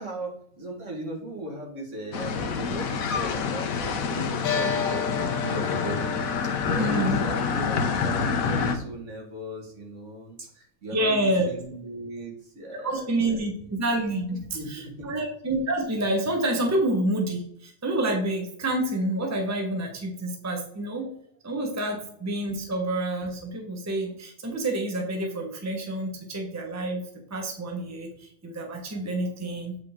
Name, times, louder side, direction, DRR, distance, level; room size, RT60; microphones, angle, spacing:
voice 1, 0.0-6.2 6.4-13.4 14.3-15.1, right 1 dB, 60° right, 0 dB, 2.1 m, -37 dB
sound 1, 2.1-8.7, left 5 dB, 80° left, 1.3 m, -27 dB
voice 2, 6.8-7.2 10.9-11.5 12.7-21.1 21.4-27.0 27.3-29.8, right 1 dB, 15° right, 2 dB, 1.0 m, -28 dB
8.3 x 4.8 x 3.6 m, 0.67 s
omnidirectional pair, 1.4 m